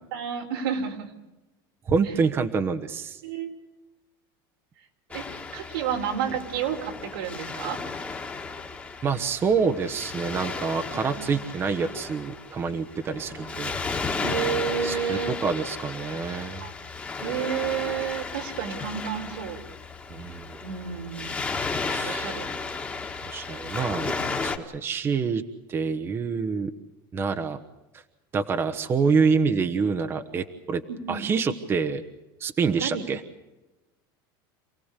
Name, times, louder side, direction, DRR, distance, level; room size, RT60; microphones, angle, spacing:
voice 1, 0.1-1.1 2.0-2.1 3.2-3.5 5.1-7.8 10.9-11.4 14.2-15.3 16.6-16.7 17.2-19.6 20.6-21.4 22.0-22.5 24.1-24.2 30.9-31.3 32.8-33.0, right 8 dB, 90° right, 3 dB, 4.2 m, -31 dB
voice 2, 1.9-3.2 9.0-13.7 14.8-16.6 20.1-20.6 21.9-22.4 23.3-24.1 24.4-25.4 25.7-26.7 27.1-27.6 28.3-30.8 31.1-32.0 32.4-33.2, right 5 dB, 20° right, 7 dB, 1.1 m, -26 dB
Waves surf, 5.1-24.6, left 4 dB, 10° left, 1.8 m, -34 dB
27.5 x 18.0 x 8.3 m, 1.0 s
supercardioid pair, 160°, 12 cm